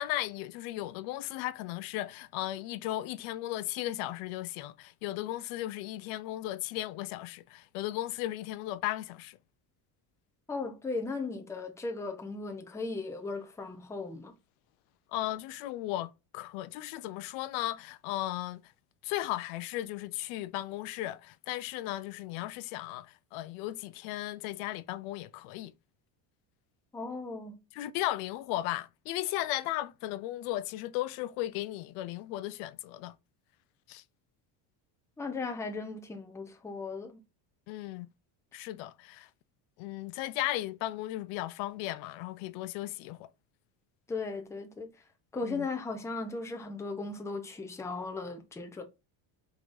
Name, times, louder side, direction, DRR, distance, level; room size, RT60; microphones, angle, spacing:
voice 1, 0.0-9.4 15.1-18.7 19.0-25.7 27.7-33.1 33.9-34.0 37.7-38.1 38.5-39.3 39.8-43.3 45.4-45.7, left 15 dB, 80° left, 0.6 m, -36 dB
voice 2, 10.5-14.3 26.9-27.6 35.2-37.2 44.1-44.9 45.3-48.8, left 3 dB, 5° left, 0.6 m, -37 dB
4.7 x 3.9 x 2.5 m
cardioid pair, 150°, 48 cm